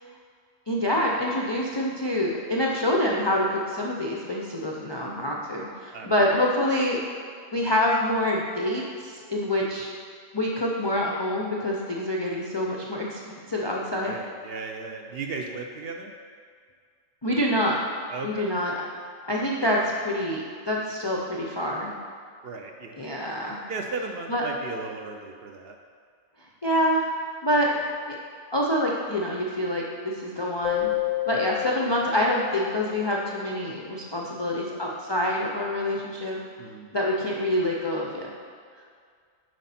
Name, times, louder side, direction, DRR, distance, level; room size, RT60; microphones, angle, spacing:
voice 1, 0.7-7.0 7.5-9.9 10.3-13.2 13.5-14.1 17.2-17.8 18.2-18.7 19.3-21.9 23.0-23.6 24.3-24.4 26.6-27.1 27.4-27.7 28.1-28.2 28.5-30.9 31.3-36.4 36.9-38.3, left 1 dB, 40° left, -3 dB, 0.4 m, -26 dB
voice 2, 13.8-16.1 18.1-18.5 22.4-23.0 23.7-25.8 27.7-27.8 31.3-31.6 36.6-36.9, right 4 dB, 60° right, 3 dB, 0.7 m, -36 dB
Keyboard (musical), 30.6-33.4, left 17 dB, 90° left, 1.0 m, -30 dB
7.7 x 5.2 x 4.2 m, 2.1 s
omnidirectional pair, 1.3 m